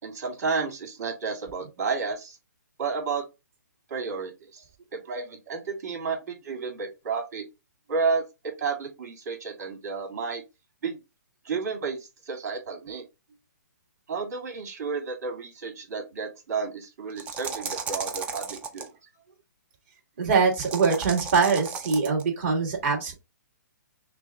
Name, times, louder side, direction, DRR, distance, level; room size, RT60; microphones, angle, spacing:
voice 1, 0.0-2.4 2.8-3.2 3.9-4.6 4.9-7.4 7.9-8.2 8.6-10.4 10.8-11.0 11.4-12.0 12.2-13.0 14.1-18.9, right 5 dB, 60° right, 2 dB, 2.8 m, -31 dB
sound 1, 17.1-18.9 20.5-22.2, right 5 dB, 10° right, 0.4 m, -35 dB
voice 2, 20.2-23.1, right 5 dB, 40° right, -1 dB, 2.6 m, -23 dB
6.0 x 2.4 x 3.7 m, 0.25 s
hypercardioid pair, 155°, 10 cm